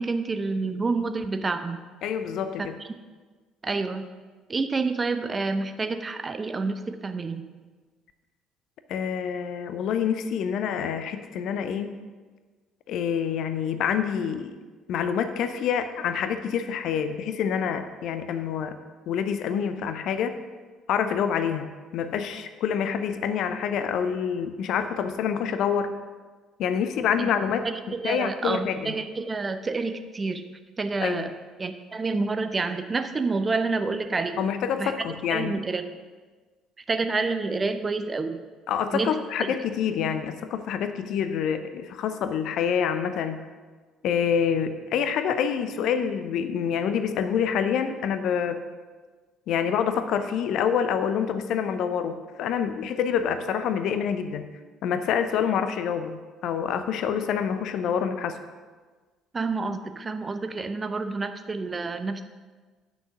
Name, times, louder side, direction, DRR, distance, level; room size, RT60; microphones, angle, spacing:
voice 1, 0.0-1.8 2.6-2.7 3.6-4.1 4.5-7.4 27.2-27.3 27.6-30.5 30.8-31.3 31.6-34.4 34.8-34.9 35.3-35.8 36.9-38.4 38.9-39.5 59.3-62.2, right 3 dB, 25° right, 9 dB, 0.7 m, -28 dB
voice 2, 2.0-2.8 8.9-12.0 12.9-14.6 14.9-18.8 19.1-20.4 20.9-21.7 21.9-25.9 26.6-29.0 31.0-31.3 34.4-35.6 38.7-43.4 44.0-48.6 49.5-54.4 54.8-58.4, left 7 dB, 55° left, 10 dB, 0.6 m, -27 dB
9.2 x 6.4 x 5.7 m, 1.4 s
figure-of-eight pair, 50°, 0 cm